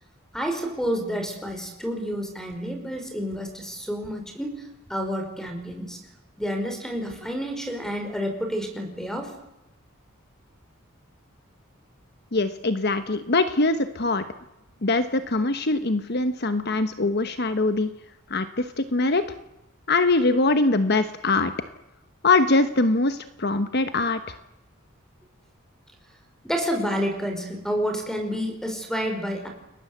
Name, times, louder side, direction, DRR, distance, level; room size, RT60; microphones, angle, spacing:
voice 1, 0.3-4.6 4.9-6.0 6.4-9.3 26.4-29.5, equal, 5° left, 5 dB, 5.3 m, -29 dB
voice 2, 12.3-14.2 14.8-17.9 18.3-19.2 19.9-21.5 22.2-24.3, left 3 dB, 50° left, 10 dB, 1.1 m, -22 dB
29.5 x 20.5 x 8.1 m, 0.92 s
head